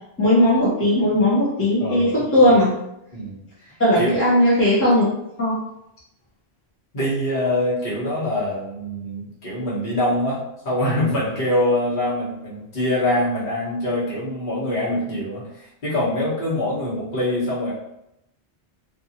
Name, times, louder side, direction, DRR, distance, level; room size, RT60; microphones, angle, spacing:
voice 1, 0.2-2.7 3.8-5.0 5.4-5.6, left 1 dB, 15° left, -7 dB, 0.8 m, -17 dB
voice 2, 1.8-2.2 3.1-3.7 3.9-4.2 6.9-17.7, left 1 dB, 50° left, -8 dB, 1.2 m, -24 dB
2.6 x 2.5 x 2.8 m, 0.82 s
omnidirectional pair, 1.1 m